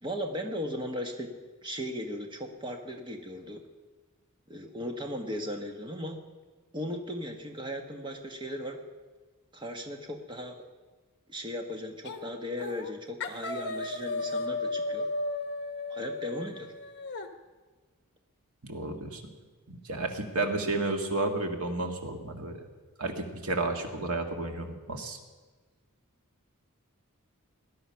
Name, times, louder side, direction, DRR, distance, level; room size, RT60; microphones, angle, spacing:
voice 1, 0.0-1.3 1.6-3.6 4.5-6.2 6.7-8.8 9.5-10.6 11.3-15.0 15.9-16.7, equal, 20° right, 3 dB, 1.3 m, -37 dB
Grito pupi, 12.1-12.3 12.6-12.9 13.2-17.3, left 2 dB, 50° left, 1.2 m, -34 dB
voice 2, 18.6-19.2 19.7-22.6 23.0-25.2, right 2 dB, 80° right, 4 dB, 1.8 m, -32 dB
19.0 x 11.0 x 5.7 m, 1.3 s
head